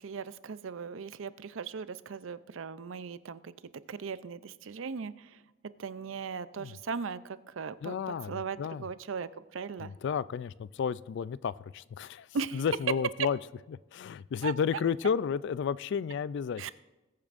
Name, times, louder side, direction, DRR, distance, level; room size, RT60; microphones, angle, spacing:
voice 1, 0.0-3.5 3.9-5.4 5.8-9.9 12.3-12.6 14.4-14.5 16.6-16.7, right 5 dB, 75° right, 15 dB, 0.5 m, -38 dB
voice 2, 7.8-8.9 9.8-12.3 12.5-13.4 13.9-16.7, left 7 dB, 60° left, 18 dB, 0.3 m, -32 dB
21.0 x 8.7 x 2.5 m, 1.1 s
head